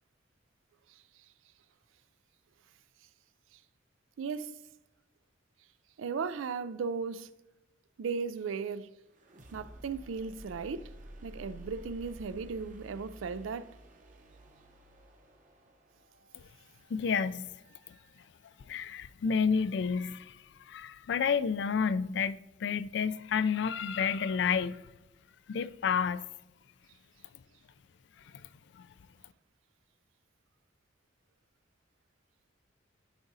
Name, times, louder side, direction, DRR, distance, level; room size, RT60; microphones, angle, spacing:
voice 1, 0.9-1.3 3.5-3.6 4.2-4.6 6.0-7.3 8.0-8.9 9.5-10.9 11.2-13.7, right 5 dB, 85° right, 0.4 m, -36 dB
sound 1, 9.1-18.8, right 1 dB, 40° right, 0.8 m, -52 dB
voice 2, 16.9-17.5 18.7-20.4 20.7-24.8 25.5-26.2 28.8-28.9, left 6 dB, 60° left, 0.3 m, -30 dB
12.5 x 4.9 x 2.7 m
head